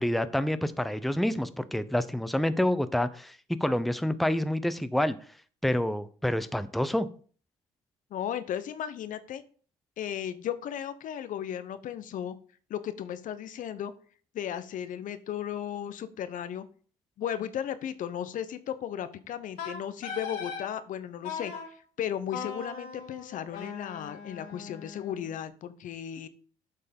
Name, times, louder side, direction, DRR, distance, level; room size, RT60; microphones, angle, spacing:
voice 1, 0.0-5.2 5.6-7.1, left 1 dB, ahead, 13 dB, 0.7 m, -28 dB
voice 2, 8.1-9.4 10.0-12.3 12.7-13.9 14.3-16.6 17.2-21.5 22.0-26.3, left 9 dB, 65° left, 13 dB, 0.9 m, -35 dB
Wind instrument woodwind instrument, 19.6-20.7 21.2-21.7 22.3-25.3, left 6 dB, 85° left, 2.2 m, -39 dB
8.0 x 5.6 x 5.3 m, 0.43 s
supercardioid pair, 70°, 15 cm